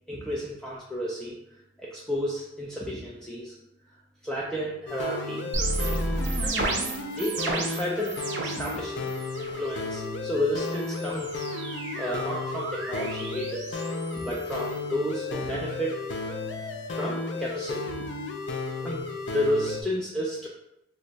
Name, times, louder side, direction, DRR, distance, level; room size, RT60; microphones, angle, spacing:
voice 1, 0.1-1.4 1.8-3.5 4.2-5.5 6.1-6.6 7.2-9.1 9.4-13.8 14.2-16.0 16.6-17.9 18.8-20.5, equal, 5° left, -5 dB, 0.3 m, -32 dB
sound 1, 4.9-19.8, left 3 dB, 80° left, 0.4 m, -33 dB
sound 2, 5.5-8.8 9.1-9.6 10.6-14.8, right 2 dB, 80° right, 0.5 m, -33 dB
2.7 x 2.1 x 3.9 m, 0.84 s
head